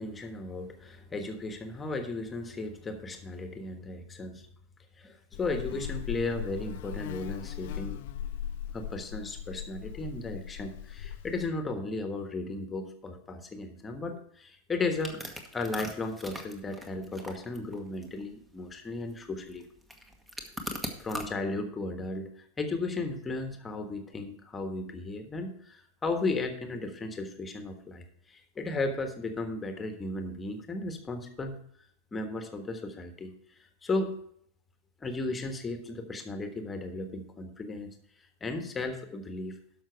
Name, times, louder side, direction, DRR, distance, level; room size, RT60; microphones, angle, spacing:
voice 1, 0.0-4.5 5.0-8.0 8.7-15.2 15.5-19.6 21.0-31.6 32.1-33.3 33.8-34.2 35.0-37.9 38.4-39.6, left 2 dB, 15° left, 6 dB, 1.4 m, -35 dB
Buzz, 5.3-11.5, left 10 dB, 50° left, 0.7 m, -39 dB
sound 1, 15.0-21.3, equal, 10° right, 1.3 m, -41 dB
12.5 x 5.8 x 4.6 m, 0.66 s
figure-of-eight pair, 90°, 0 cm